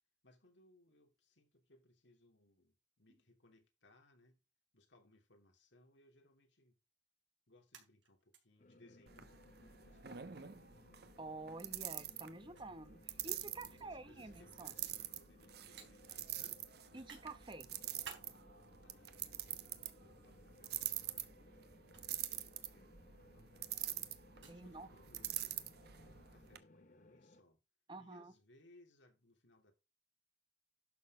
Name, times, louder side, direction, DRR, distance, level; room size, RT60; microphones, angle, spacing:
voice 1, 0.2-4.4 4.7-6.8 7.5-10.7 13.5-16.6 18.8-22.9 23.3-24.1 24.4-25.7 26.0-27.6 28.0-29.7, left 1 dB, 70° left, 3.0 m, -68 dB
sound 1, 7.7-8.4 8.7-8.8 9.2-9.3 10.3-10.6 11.7-11.8 12.5-13.9 14.3-14.5 14.8-15.0 15.8-15.9 16.4-17.3 17.7-18.3 19.1-19.9 20.9-21.2 21.8-22.0 23.3-24.6 25.3-25.6, right 6 dB, 70° right, 3.9 m, -55 dB
sound 2, 8.6-27.4, left 2 dB, 40° left, 0.7 m, -64 dB
sound 3, 9.1-26.6, right 12 dB, 55° right, 1.0 m, -46 dB
voice 2, 11.2-14.7 16.9-17.7 24.5-24.9 27.9-28.3, right 2 dB, 25° right, 0.9 m, -49 dB
11.5 x 6.4 x 4.9 m
head